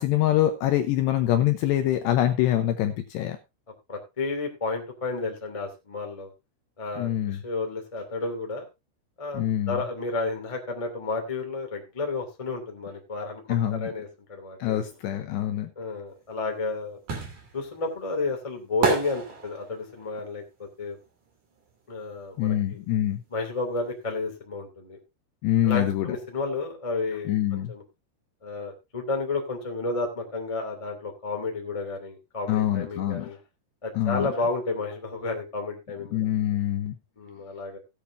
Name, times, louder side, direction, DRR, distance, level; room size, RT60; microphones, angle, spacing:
voice 1, 0.0-3.4 7.0-7.4 9.3-9.8 13.5-13.9 14.6-15.7 22.4-23.2 25.4-26.2 27.3-27.7 32.5-33.3 33.9-34.3 36.1-36.9, left 12 dB, 80° left, 6 dB, 2.5 m, -25 dB
voice 2, 3.9-6.3 6.8-8.6 9.2-13.4 13.8-14.8 15.7-17.0 17.5-21.0 21.9-22.8 23.3-25.0 25.6-27.8 28.4-33.4 33.8-36.2 37.2-37.8, left 3 dB, 60° left, 2 dB, 0.3 m, -32 dB
sound 1, 16.2-22.1 22.3-23.9 24.2-24.3, right 5 dB, 45° right, 3.7 m, -31 dB
17.0 x 8.8 x 2.7 m, 0.24 s
omnidirectional pair, 5.9 m